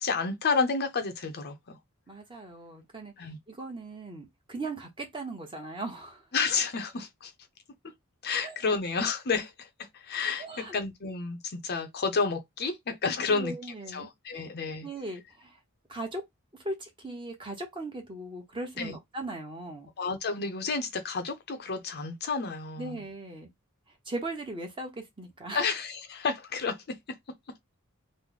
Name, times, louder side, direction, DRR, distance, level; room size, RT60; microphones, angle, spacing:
voice 1, 0.0-1.8 3.2-3.4 6.3-7.3 8.2-13.5 13.9-14.9 18.8-19.0 20.0-23.0 25.5-27.0, left 4 dB, 45° left, 0.6 m, -30 dB
voice 2, 2.1-6.2 8.4-8.8 10.4-10.8 13.3-14.5 14.8-15.6 15.9-16.2 16.5-19.9 22.8-23.5 24.0-25.7, right 2 dB, 20° right, 0.9 m, -39 dB
3.2 x 2.1 x 3.8 m
head